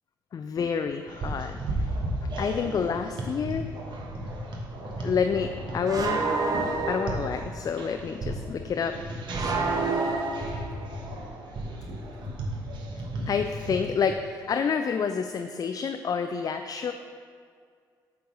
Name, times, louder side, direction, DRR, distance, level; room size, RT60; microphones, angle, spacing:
voice 1, 0.3-1.9 2.2-3.7 5.0-6.2 6.9-9.0 13.3-16.9, left 6 dB, 45° left, 7 dB, 0.3 m, -28 dB
sound 1, 1.1-14.1, right 1 dB, 60° right, 1.1 m, -35 dB
sound 2, 3.9-4.1 5.9-7.5 9.3-11.0, right 3 dB, 45° right, 0.9 m, -29 dB
7.9 x 3.2 x 5.3 m, 2.2 s
supercardioid pair, 65°, 9 cm